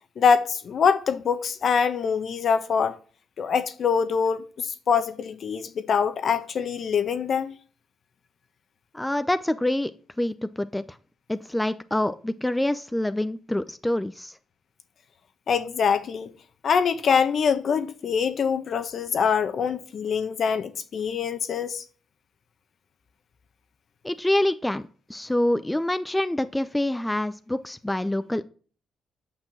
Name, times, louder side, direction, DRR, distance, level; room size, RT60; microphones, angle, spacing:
voice 1, 0.2-3.0 3.4-7.5 15.5-16.3 16.6-21.8, left 6 dB, 55° left, 1.1 m, -24 dB
voice 2, 8.9-9.9 10.2-11.0 11.3-14.4 24.0-24.8 25.1-28.4, left 1 dB, 10° left, 0.6 m, -26 dB
8.9 x 5.9 x 7.4 m
cardioid pair, 90°, 0 cm